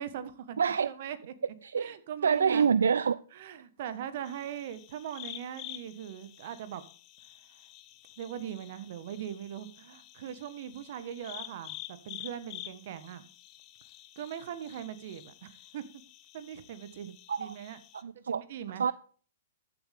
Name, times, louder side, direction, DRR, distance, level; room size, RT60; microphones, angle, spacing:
voice 1, 0.0-0.6 0.8-1.3 1.8-2.7 3.3-6.8 8.2-13.3 14.2-15.8 16.3-17.8 18.1-18.8, right 9 dB, 55° right, 1.5 m, -40 dB
voice 2, 0.6-0.9 1.6-1.9 2.2-3.2 17.3-17.5 17.9-18.4 18.8-18.9, right 6 dB, 80° right, 0.4 m, -26 dB
sound 1, 4.2-18.0, left 15 dB, 35° left, 0.9 m, -49 dB
14.0 x 7.9 x 3.6 m
hypercardioid pair, 125°, 0 cm